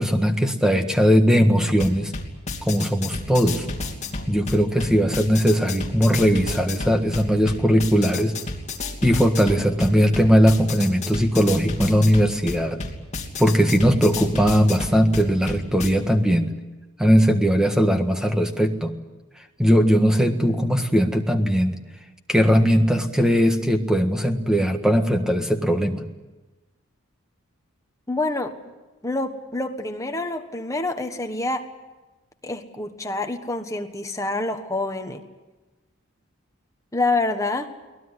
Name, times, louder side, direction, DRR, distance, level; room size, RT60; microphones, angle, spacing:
voice 1, 0.0-2.1 2.6-3.7 4.3-8.3 9.0-12.8 13.4-16.5 17.0-18.9 19.6-21.8 22.3-26.0, equal, 5° right, 6 dB, 1.5 m, -19 dB
sound 1, 1.7-15.9, left 3 dB, 30° left, 2.9 m, -32 dB
voice 2, 28.1-28.5 29.0-31.6 32.4-35.2 36.9-37.7, left 2 dB, 15° left, 6 dB, 1.4 m, -27 dB
23.5 x 19.0 x 9.8 m, 1.2 s
head